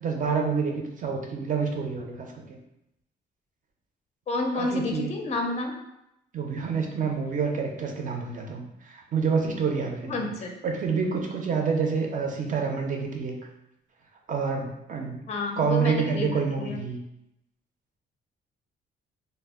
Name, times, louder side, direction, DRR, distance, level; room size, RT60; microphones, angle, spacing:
voice 1, 0.0-2.6 4.5-5.1 6.3-10.3 10.6-13.4 14.3-15.2 15.6-17.0, right 5 dB, 40° right, 2 dB, 0.5 m, -28 dB
voice 2, 4.3-5.7 10.0-10.5 15.3-16.8, left 2 dB, 35° left, 2 dB, 0.4 m, -30 dB
2.1 x 2.0 x 3.4 m, 0.83 s
cardioid pair, 90°, 20 cm